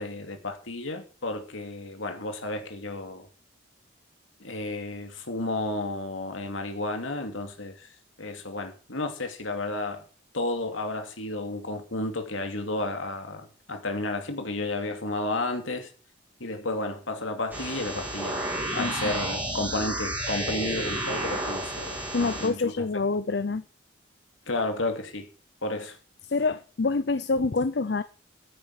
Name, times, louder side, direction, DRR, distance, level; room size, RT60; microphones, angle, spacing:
voice 1, 0.0-3.3 4.4-7.9 8.2-10.0 10.3-15.9 16.4-18.5 18.7-22.9 24.5-25.3 25.6-26.0, left 2 dB, 85° left, 2.7 m, -32 dB
sound 1, 17.5-22.5, right 1 dB, 10° right, 6.3 m, -31 dB
voice 2, 18.8-19.1 22.1-23.6 26.3-28.0, left 3 dB, 55° left, 0.6 m, -26 dB
13.0 x 10.5 x 4.9 m
head